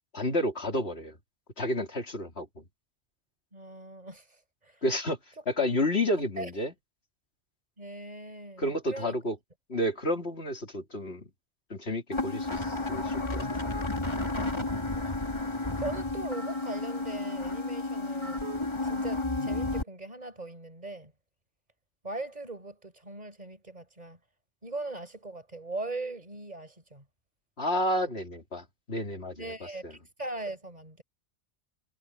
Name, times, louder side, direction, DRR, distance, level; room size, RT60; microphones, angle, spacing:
voice 1, 0.1-1.2 1.6-2.6 4.8-5.2 5.5-6.7 8.6-9.4 9.7-11.3 11.7-13.5 27.6-29.5 29.8-29.9, left 1 dB, 65° left, 3.5 m, -30 dB
voice 2, 3.5-4.8 6.4-6.5 7.8-9.1 14.1-15.4 15.8-18.4 18.8-21.1 22.0-24.2 24.6-27.0 29.4-31.0, right 2 dB, 40° right, 5.2 m, -40 dB
sound 1, 12.1-19.8, left 2 dB, 25° left, 2.9 m, -32 dB
omnidirectional pair, 1.1 m